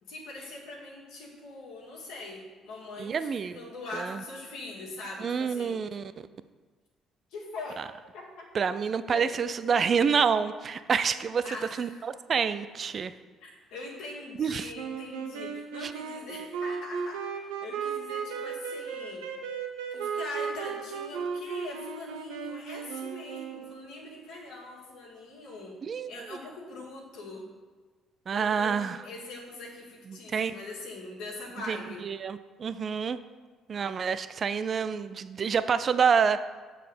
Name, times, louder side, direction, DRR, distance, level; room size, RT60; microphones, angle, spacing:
voice 1, 0.0-5.7 7.3-7.8 8.1-8.5 9.1-9.3 11.4-12.0 13.4-19.3 19.9-25.8 26.1-27.5 28.3-32.1, left 2 dB, 70° left, -4 dB, 1.9 m, -42 dB
voice 2, 3.0-3.6 3.9-4.2 5.2-6.1 7.8-7.9 8.5-11.5 11.8-13.1 14.4-14.7 15.8-15.9 25.8-26.4 28.3-29.0 30.1-30.5 31.7-33.2 33.7-36.4, right 6 dB, 45° right, 13 dB, 0.4 m, -28 dB
sound 1, 14.7-23.9, right 6 dB, 75° right, 0.8 m, -35 dB
7.4 x 4.2 x 6.7 m, 1.4 s
hypercardioid pair, 50°, 0 cm